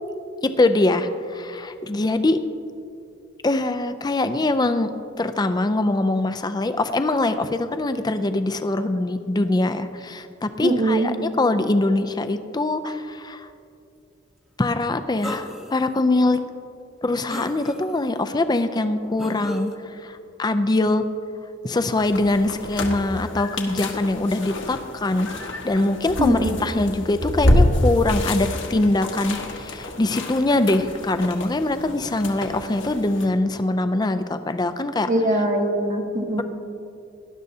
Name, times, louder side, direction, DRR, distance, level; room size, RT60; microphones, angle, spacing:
voice 1, 0.4-2.4 3.4-4.9 5.2-13.5 14.6-16.4 17.0-19.7 20.0-21.0 21.6-25.3 25.6-35.1, left 2 dB, 20° left, 9 dB, 0.4 m, -23 dB
voice 2, 10.6-11.1 26.2-26.6 35.1-36.4, right 1 dB, 40° right, 1 dB, 1.2 m, -22 dB
sound 1, 15.2-15.8 16.4-16.5 17.3-18.1 19.2-19.7, equal, ahead, 0.8 m, -34 dB
sound 2, 22.0-33.3, left 1 dB, 65° left, 1.3 m, -27 dB
18.0 x 11.5 x 2.8 m, 2.6 s
head